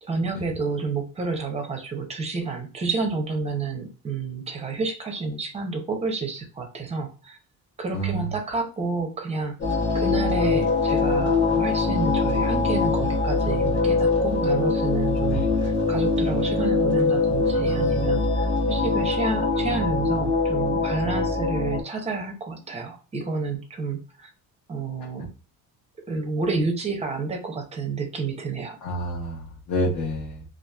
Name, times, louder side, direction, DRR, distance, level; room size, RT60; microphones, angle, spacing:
voice 1, 0.0-7.4 7.8-9.6 9.9-24.3 24.7-25.3 26.1-28.8, right 4 dB, 15° right, 4 dB, 0.5 m, -30 dB
voice 2, 7.9-8.3 15.3-15.5 28.8-30.4, equal, 60° left, -4 dB, 1.0 m, -28 dB
sound 1, 9.6-21.8, left 3 dB, 30° left, 0.9 m, -23 dB
2.8 x 2.4 x 2.2 m, 0.35 s
cardioid pair, 150°, 38 cm